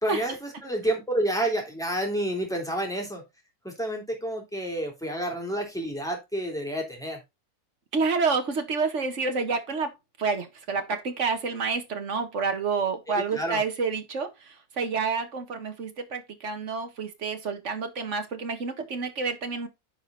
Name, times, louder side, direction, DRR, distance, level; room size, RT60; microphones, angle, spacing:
voice 1, 0.0-3.2 3.6-7.2 13.3-13.6, right 1 dB, ahead, 3.2 m, -29 dB
voice 2, 7.9-9.9 10.2-19.7, right 4 dB, 50° right, 1.8 m, -29 dB
9.8 x 5.0 x 4.0 m
omnidirectional pair, 1.7 m